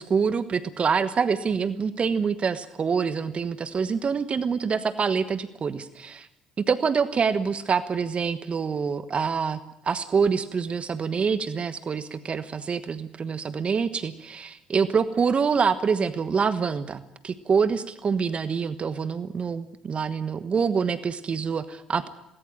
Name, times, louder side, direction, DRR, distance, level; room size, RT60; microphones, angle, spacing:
voice 1, 0.0-6.3 6.7-22.1, right 6 dB, 40° right, 13 dB, 1.2 m, -26 dB
19.5 x 19.0 x 9.1 m, 0.84 s
hypercardioid pair, 55°, 3 cm